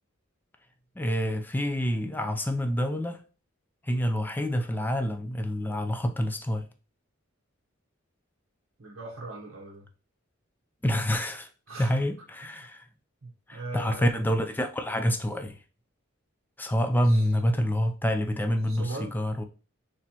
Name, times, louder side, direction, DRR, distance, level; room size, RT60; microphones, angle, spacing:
voice 1, 1.0-3.2 3.9-6.7 10.8-11.5 11.8-12.8 13.5-15.6 16.6-19.4, equal, 10° left, 0.4 m, -27 dB
voice 2, 8.8-9.9 11.7-11.9 12.5-12.7 13.2-14.2 17.0-17.3 18.7-19.2, right 3 dB, 70° right, 0.9 m, -39 dB
4.2 x 3.1 x 2.9 m
head